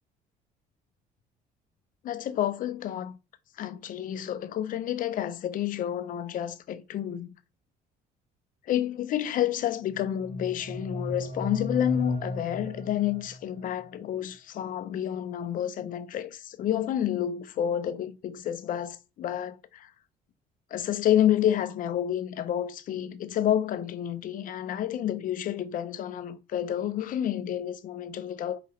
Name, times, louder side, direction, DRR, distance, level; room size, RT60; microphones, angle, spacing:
voice 1, 2.0-3.2 3.6-7.3 8.7-19.9 20.7-28.6, left 11 dB, 55° left, 0.5 m, -29 dB
sound 1, 9.9-13.8, left 1 dB, 75° right, 2.5 m, -35 dB
4.8 x 2.9 x 3.1 m
cardioid pair, 110°, 17 cm